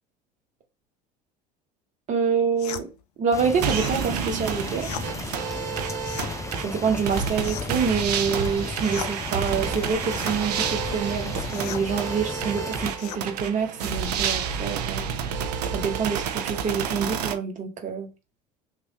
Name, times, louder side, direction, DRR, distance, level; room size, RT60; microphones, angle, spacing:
voice 1, 2.1-2.9 3.2-4.9 6.6-15.1 15.7-18.1, right 6 dB, 40° right, 1.1 m, -26 dB
sound 1, 2.6-2.9 3.6-4.0 4.8-5.1 6.0-6.3 7.4-7.8 8.8-9.1 10.1-10.4 11.5-11.9 13.0-13.2, left 9 dB, 80° left, 0.4 m, -36 dB
sound 2, 3.3-12.9, left 4 dB, 15° left, 0.5 m, -35 dB
sound 3, 3.6-17.3, right 7 dB, 85° right, 0.5 m, -30 dB
3.1 x 2.6 x 2.7 m
hypercardioid pair, 75°, 20 cm